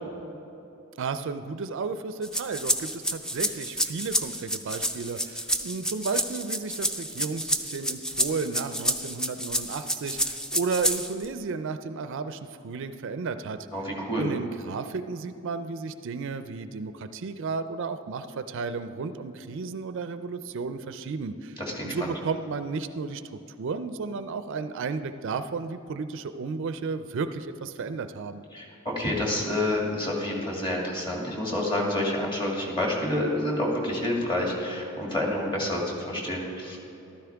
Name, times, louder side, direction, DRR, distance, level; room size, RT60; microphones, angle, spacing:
voice 1, 1.0-13.6 14.2-23.2 23.6-28.4, right 4 dB, 60° right, 11 dB, 0.4 m, -33 dB
sound 1, 2.2-11.3, equal, 5° left, 0.4 m, -29 dB
voice 2, 13.7-14.3 21.6-22.1 28.5-36.8, left 1 dB, 25° left, -2 dB, 2.2 m, -28 dB
13.5 x 12.5 x 3.5 m, 2.9 s
head